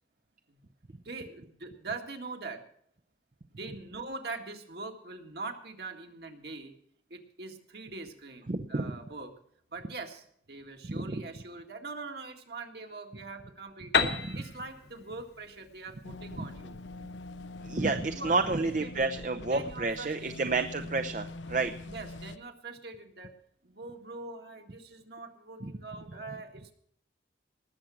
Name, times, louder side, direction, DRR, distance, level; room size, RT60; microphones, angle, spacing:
voice 1, 1.1-2.6 3.5-6.7 7.1-8.4 8.7-9.3 9.7-14.1 14.3-16.8 18.1-19.1 19.5-20.5 21.9-23.3 23.6-26.7, right 3 dB, 60° right, 4 dB, 1.8 m, -43 dB
voice 2, 8.5-8.8 10.9-11.2 14.2-14.4 17.6-21.7 25.6-25.7, right 3 dB, 45° right, 8 dB, 0.6 m, -30 dB
Piano, 13.9-17.6, left 5 dB, 60° left, 1.3 m, -33 dB
sound 1, 16.0-22.4, left 2 dB, 90° left, 0.7 m, -44 dB
19.5 x 7.4 x 6.2 m, 0.67 s
head